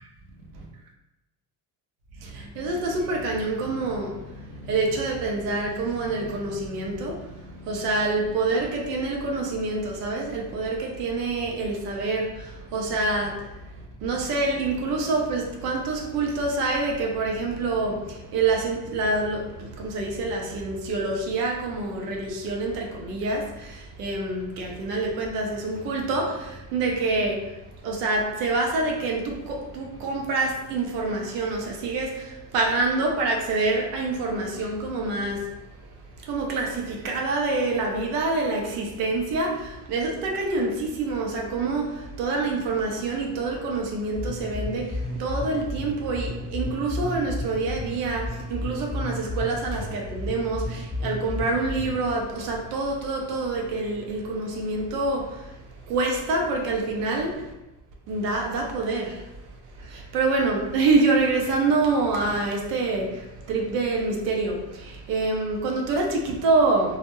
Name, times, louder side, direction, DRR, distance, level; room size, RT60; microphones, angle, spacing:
voice 1, 2.2-35.5 36.2-55.6 55.9-57.5 58.1-59.3 59.8-67.0, right 3 dB, 90° right, 0.7 m, -26 dB
sound 1, 44.2-52.2, left 1 dB, 5° left, 0.7 m, -32 dB
2.3 x 2.0 x 3.0 m
supercardioid pair, 75°, 46 cm